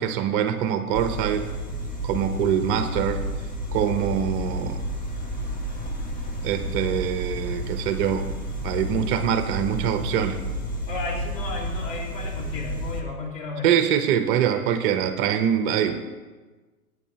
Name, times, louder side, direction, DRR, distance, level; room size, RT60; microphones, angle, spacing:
voice 1, 0.0-1.5 2.0-3.2 3.7-4.8 6.4-8.3 8.6-10.4 13.6-16.0, right 9 dB, 30° right, 9 dB, 0.8 m, -24 dB
sound 1, 0.9-13.0, equal, 20° left, 1.4 m, -31 dB
voice 2, 10.9-13.7, left 3 dB, 85° left, -3 dB, 4.0 m, -33 dB
17.0 x 9.6 x 2.8 m, 1.3 s
hypercardioid pair, 115°, 47 cm